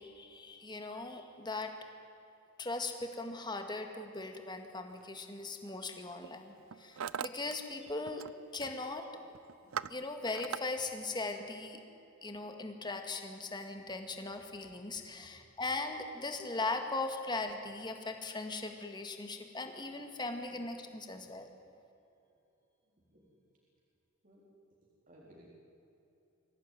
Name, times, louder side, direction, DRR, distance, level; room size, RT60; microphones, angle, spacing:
voice 1, 0.0-1.7 2.6-8.2 8.5-9.1 9.9-11.8 12.2-21.5, left 3 dB, 20° left, 5 dB, 2.0 m, -39 dB
Hammer, 5.0-5.3 6.0-6.3 6.6-7.5 7.8-8.3 8.6-8.9 9.3-10.6, right 7 dB, 75° right, 0.5 m, -41 dB
voice 2, 9.6-10.0 15.3-15.4 20.5-20.6 23.1-23.4 24.2-24.4 25.1-25.5, equal, 40° right, -4 dB, 4.0 m, -61 dB
24.0 x 17.0 x 9.5 m, 2.8 s
head